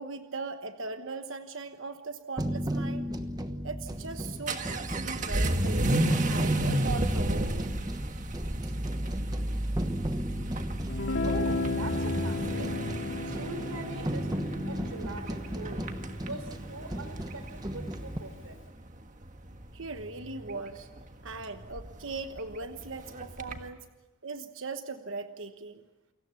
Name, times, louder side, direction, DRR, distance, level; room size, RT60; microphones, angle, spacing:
voice 1, 0.0-3.1 3.6-5.9 6.3-7.7 19.7-20.9 21.2-23.9 24.2-25.8, right 3 dB, 65° right, 7 dB, 1.2 m, -39 dB
sound 1, 2.4-18.2, right 1 dB, 20° right, 1.1 m, -35 dB
Vehicle / Accelerating revving vroom, 3.9-23.7, right 1 dB, 35° right, 1.6 m, -33 dB
Guitar, 10.9-16.7, left 3 dB, 60° left, 2.3 m, -35 dB
voice 2, 11.2-12.7 13.2-14.3 14.7-15.9 16.2-18.6, right 3 dB, 90° right, 10 dB, 3.7 m, -42 dB
29.5 x 23.5 x 7.1 m, 1.1 s
head